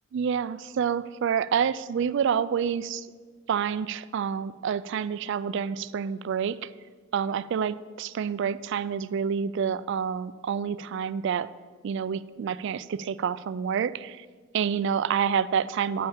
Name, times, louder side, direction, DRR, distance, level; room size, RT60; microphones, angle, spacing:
voice 1, 0.1-3.1 3.5-6.7 7.1-11.5 11.8-14.3 14.5-16.1, right 7 dB, 60° right, 17 dB, 0.3 m, -28 dB
8.5 x 5.6 x 7.0 m, 1.5 s
head